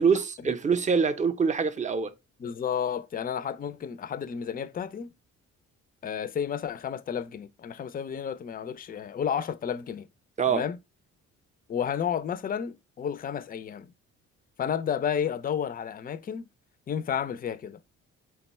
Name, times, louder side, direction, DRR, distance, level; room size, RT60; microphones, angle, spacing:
voice 1, 0.0-2.1 10.4-10.6, right 6 dB, 25° right, 0.6 m, -24 dB
voice 2, 2.4-5.1 6.0-10.1 10.5-10.8 11.7-13.9 14.6-16.5 16.9-17.8, left 8 dB, 30° left, 0.4 m, -31 dB
3.8 x 2.2 x 4.1 m
cardioid pair, 90°, 30 cm